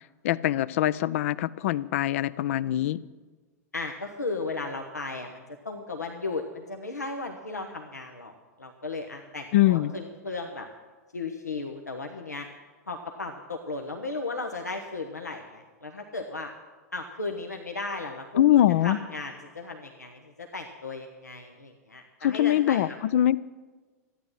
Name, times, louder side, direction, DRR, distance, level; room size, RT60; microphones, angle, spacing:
voice 1, 0.0-3.0 9.5-9.9 18.4-19.0 22.2-23.4, left 13 dB, 55° left, 19 dB, 0.5 m, -23 dB
voice 2, 3.7-8.3 8.6-10.7 11.1-12.5 12.9-16.5 16.9-22.8, left 3 dB, 85° left, 2 dB, 1.1 m, -35 dB
14.0 x 10.0 x 7.6 m, 1.3 s
figure-of-eight pair, 95°, 9 cm